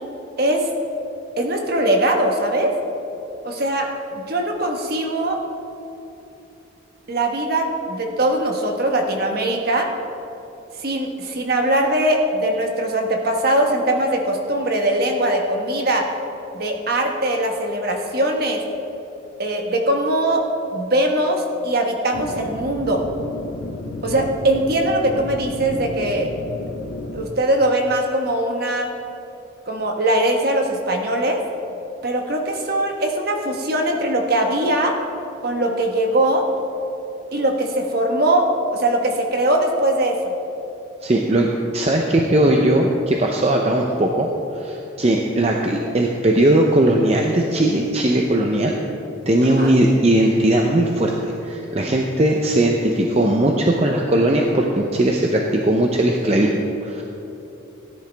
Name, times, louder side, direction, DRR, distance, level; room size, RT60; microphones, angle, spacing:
voice 1, 0.4-0.7 1.4-2.7 3.4-5.4 7.1-9.9 10.8-16.1 16.5-18.6 19.4-20.4 20.7-23.0 24.0-26.3 27.1-28.9 29.7-31.4 32.0-34.9 35.4-36.5 37.3-40.3 49.6-49.7, right 1 dB, 50° right, 2 dB, 1.2 m, -21 dB
sound 1, 22.1-27.3, left 1 dB, 65° left, 0.8 m, -32 dB
voice 2, 41.0-41.5 41.7-44.3 44.5-48.7 49.3-57.0, right 1 dB, 30° right, 1 dB, 0.6 m, -18 dB
16.5 x 10.5 x 3.4 m, 2.9 s
head